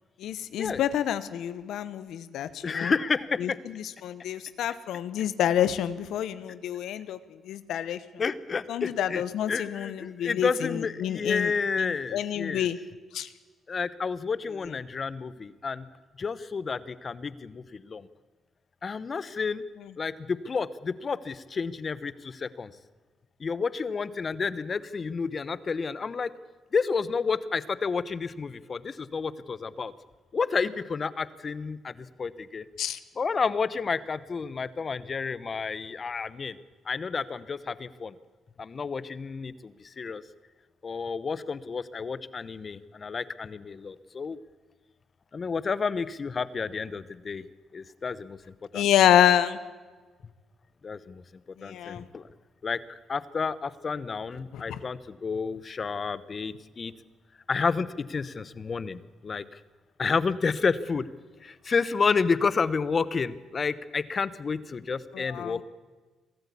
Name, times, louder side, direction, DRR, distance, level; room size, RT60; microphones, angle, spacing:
voice 1, 0.2-2.9 3.4-7.2 7.5-8.0 8.7-11.5 11.8-12.8 13.1-13.3 32.8-33.0 48.7-49.6 51.6-52.1 54.5-54.8 65.1-65.6, left 10 dB, 80° left, 14 dB, 0.9 m, -27 dB
voice 2, 2.6-3.6 8.2-9.2 9.5-12.7 13.7-15.9 16.2-18.1 18.8-19.6 20.0-22.7 23.4-26.3 26.7-29.9 30.3-32.6 33.2-36.6 36.9-38.1 38.6-40.2 40.8-44.4 45.3-47.4 47.7-48.4 48.7-48.9 50.8-51.2 51.6-52.3 52.6-56.9 57.5-59.6 60.0-61.1 61.4-65.6, left 5 dB, 40° left, 16 dB, 0.9 m, -30 dB
23.0 x 13.5 x 8.5 m, 1.3 s
cardioid pair, 90°, 0 cm